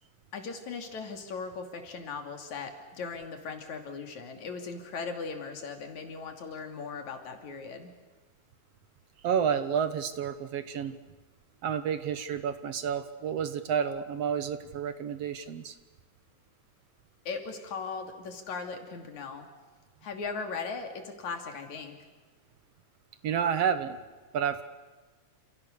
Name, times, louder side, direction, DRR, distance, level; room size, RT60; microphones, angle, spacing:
voice 1, 0.3-7.9 17.3-19.5 20.0-22.0, left 4 dB, 75° left, 4 dB, 4.1 m, -38 dB
voice 2, 9.2-11.0 11.6-15.8 23.2-24.0 24.3-24.6, right 7 dB, 65° right, 11 dB, 2.1 m, -30 dB
29.5 x 28.0 x 6.7 m, 1.3 s
omnidirectional pair, 3.3 m